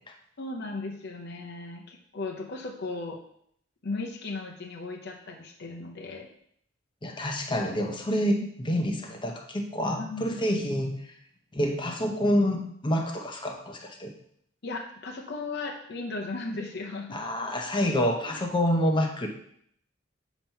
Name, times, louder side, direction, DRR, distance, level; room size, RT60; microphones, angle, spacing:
voice 1, 0.4-3.2 3.8-6.3 8.4-8.5 10.0-10.2 14.6-17.2 18.2-18.4, left 3 dB, 55° left, 1 dB, 0.8 m, -36 dB
voice 2, 7.0-11.0 11.5-14.1 17.1-19.3, equal, 25° left, 3 dB, 0.7 m, -27 dB
7.2 x 3.0 x 5.5 m, 0.68 s
head